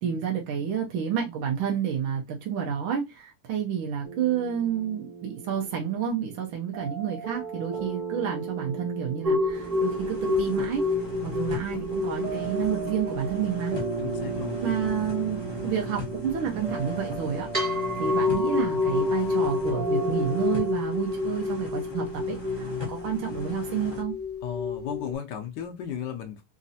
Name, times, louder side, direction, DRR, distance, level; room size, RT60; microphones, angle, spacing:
voice 1, 0.0-10.8 11.2-13.8 14.6-24.1, right 8 dB, 75° right, 1.5 m, -30 dB
sound 1, 4.0-20.7, right 5 dB, 40° right, 1.2 m, -37 dB
sound 2, 9.2-25.1, left 3 dB, 20° right, 1.3 m, -29 dB
sound 3, 9.5-24.0, left 1 dB, 35° left, 0.4 m, -40 dB
voice 2, 14.0-14.6 24.4-26.4, left 9 dB, 75° left, 1.0 m, -35 dB
4.0 x 2.5 x 2.6 m
omnidirectional pair, 2.3 m